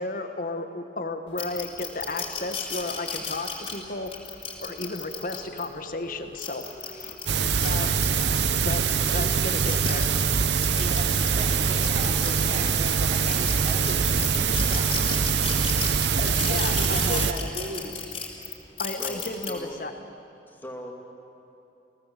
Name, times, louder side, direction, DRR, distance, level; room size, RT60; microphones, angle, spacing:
voice 1, 0.0-7.3 7.6-8.0 8.6-10.1 16.2-17.3 18.8-19.9, left 2 dB, 50° left, 7 dB, 1.5 m, -34 dB
sound 1, 1.4-5.7 6.2-8.3 8.7-12.9 13.3-19.5, left 6 dB, 35° left, 3.5 m, -34 dB
sound 2, 2.0-3.7 4.5-7.1 8.0-10.6 11.7-12.3, equal, 15° right, 2.8 m, -48 dB
sound 3, 7.3-17.3, right 6 dB, 75° right, 0.8 m, -24 dB
voice 2, 10.7-15.5 16.0-16.1 16.5-18.0, right 1 dB, 45° right, 0 dB, 3.2 m, -37 dB
voice 3, 18.8-19.8 20.5-20.9, equal, 10° left, 1 dB, 2.5 m, -39 dB
30.0 x 17.0 x 7.6 m, 2.8 s
head